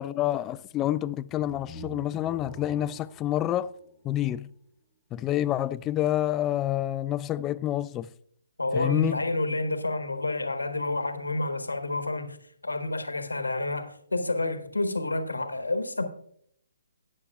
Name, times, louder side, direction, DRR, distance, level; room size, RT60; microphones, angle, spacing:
voice 1, 0.0-3.7 4.0-4.5 5.1-8.1 8.7-9.2, left 13 dB, 20° left, 0.3 m, -28 dB
sound 1, 1.3-4.4, left 1 dB, ahead, 1.6 m, -46 dB
voice 2, 8.6-12.4 12.6-16.0, left 2 dB, 90° left, 1.3 m, -29 dB
13.5 x 8.9 x 2.4 m
figure-of-eight pair, 140°, 0 cm